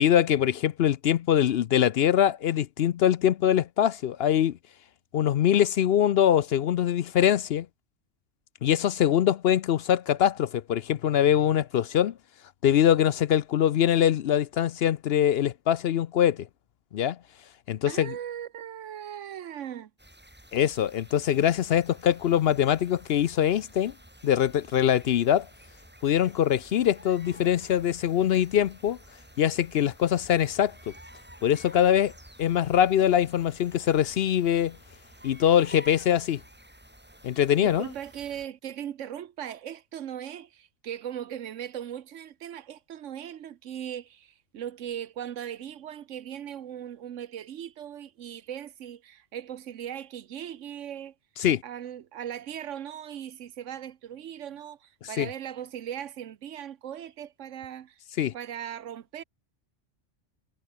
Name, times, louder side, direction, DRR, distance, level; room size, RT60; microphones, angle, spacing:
voice 1, 0.0-4.6 5.1-7.7 8.6-12.1 12.6-16.5 16.9-17.2 17.7-18.1 20.5-23.9 24.2-25.5 26.0-29.0 29.4-30.9 31.4-32.1 32.4-34.8 35.2-36.4 37.2-37.9 51.4-51.6 55.2-55.3 58.2-58.3, left 10 dB, 60° left, 0.7 m, -23 dB
voice 2, 17.9-19.9 37.6-51.1 51.6-58.0 58.3-59.2, right 10 dB, 80° right, 1.2 m, -38 dB
sound 1, 20.0-38.5, right 1 dB, 10° right, 2.7 m, -52 dB
omnidirectional pair, 1.3 m